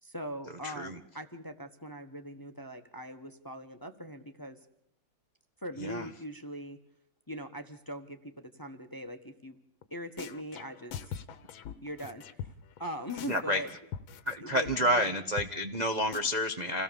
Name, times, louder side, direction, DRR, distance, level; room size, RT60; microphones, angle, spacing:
voice 1, 0.0-4.6 5.6-6.8 7.3-9.6 9.9-11.2 11.8-12.5 12.8-13.7 14.4-15.2, equal, 15° left, 8 dB, 1.1 m, -41 dB
voice 2, 0.6-1.0 5.8-6.1 13.3-13.6 14.3-16.8, equal, 30° right, 4 dB, 0.9 m, -29 dB
sound 1, 9.8-9.9 10.2-12.8 13.1-14.4 14.7-14.8 15.0-15.1 15.4-15.5 15.8-15.9 16.1-16.2, left 8 dB, 85° left, 1.9 m, -42 dB
27.5 x 17.0 x 7.1 m, 0.75 s
omnidirectional pair, 2.1 m